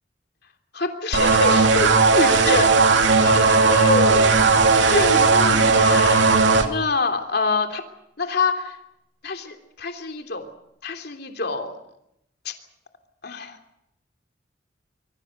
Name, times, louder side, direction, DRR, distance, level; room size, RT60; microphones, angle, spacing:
voice 1, 0.7-2.7 3.1-4.3 4.8-6.4 6.6-7.8 8.2-8.8 9.2-10.5 10.8-11.8 12.4-12.5 13.2-13.6, left 3 dB, 60° left, 5 dB, 3.2 m, -26 dB
sound 1, 1.1-6.7, right 4 dB, 80° right, 2.6 m, -16 dB
26.0 x 23.0 x 6.7 m, 0.80 s
head